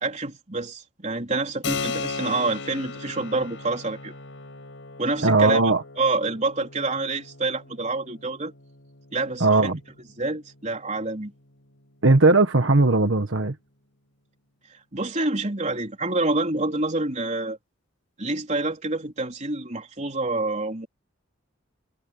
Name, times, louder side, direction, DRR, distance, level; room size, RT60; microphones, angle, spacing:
voice 1, 0.0-4.1 5.0-5.6 6.0-8.5 9.1-9.7 10.2-11.3 14.9-17.6 18.2-20.9, right 2 dB, 40° right, 3.8 m, -27 dB
Keyboard (musical), 1.6-11.8, left 4 dB, 80° left, 5.0 m, -38 dB
voice 2, 5.2-5.8 9.4-9.8 12.0-13.5, right 3 dB, 75° right, 1.5 m, -18 dB
head